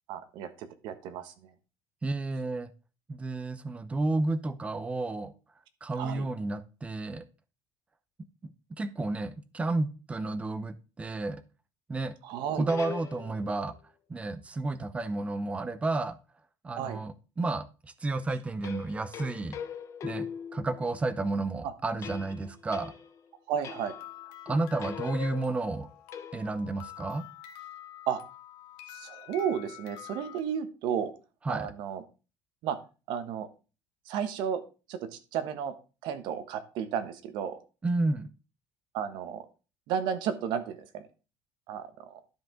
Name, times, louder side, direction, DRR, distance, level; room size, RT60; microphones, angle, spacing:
voice 1, 0.1-1.3 6.0-6.3 12.2-12.7 16.7-17.0 21.6-21.7 23.5-23.9 28.1-28.2 28.9-31.1 31.5-32.0 32.6-32.8 33.1-33.5 34.1-34.6 34.9-35.7 36.0-37.6 38.9-39.4 39.9-41.1 41.7-42.2, right 8 dB, 65° right, 1.2 m, -33 dB
voice 2, 2.0-2.7 3.1-5.3 5.8-7.2 8.4-8.5 8.8-11.4 11.9-12.1 12.5-13.7 14.1-16.2 16.6-19.6 20.0-22.9 24.5-25.9 26.3-27.3 31.4-31.7 37.8-38.3, right 2 dB, 15° right, 0.6 m, -31 dB
sound 1, 12.3-13.7 18.6-21.1 22.0-23.3 23.6-24.2 24.5-26.7, left 8 dB, 35° left, 0.9 m, -41 dB
sound 2, 23.8-30.4, left 13 dB, 80° left, 1.4 m, -48 dB
12.0 x 5.1 x 3.7 m
cardioid pair, 150°, 9 cm